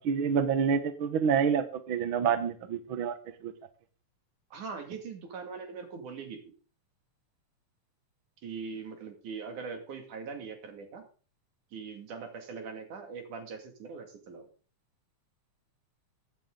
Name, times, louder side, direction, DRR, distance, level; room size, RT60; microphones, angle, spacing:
voice 1, 0.0-3.1 3.4-3.5, right 7 dB, 60° right, 10 dB, 1.4 m, -27 dB
voice 2, 4.5-6.5 8.4-11.0 11.7-14.5, right 5 dB, 80° right, 4 dB, 3.8 m, -41 dB
15.5 x 9.2 x 3.8 m, 0.37 s
omnidirectional pair, 3.5 m